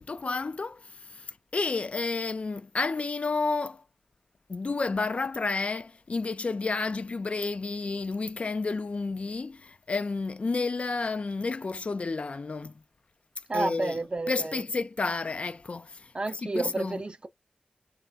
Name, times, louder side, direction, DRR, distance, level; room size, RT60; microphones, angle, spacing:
voice 1, 0.0-3.8 4.5-12.8 13.5-14.0 14.3-16.1 16.4-17.0, left 3 dB, 55° left, 0.3 m, -31 dB
voice 2, 13.5-14.6 16.1-17.3, right 2 dB, 40° right, 0.5 m, -31 dB
3.1 x 2.4 x 3.9 m
wide cardioid pair, 80°, 3 cm